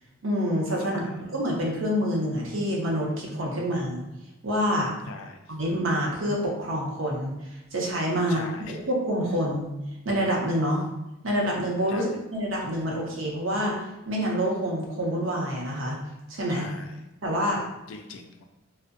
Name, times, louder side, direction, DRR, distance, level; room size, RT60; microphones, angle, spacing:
voice 1, 0.2-4.0 4.4-4.9 5.5-8.4 8.7-9.7 10.0-10.8 11.2-13.8 14.1-16.0 16.3-16.7 17.2-17.6, equal, 75° right, -2 dB, 0.6 m, -27 dB
voice 2, 0.8-1.2 5.1-5.6 8.3-8.8 11.9-12.1 16.5-17.1 17.9-18.5, left 4 dB, 75° left, 5 dB, 0.3 m, -42 dB
2.5 x 2.1 x 2.4 m, 0.96 s
head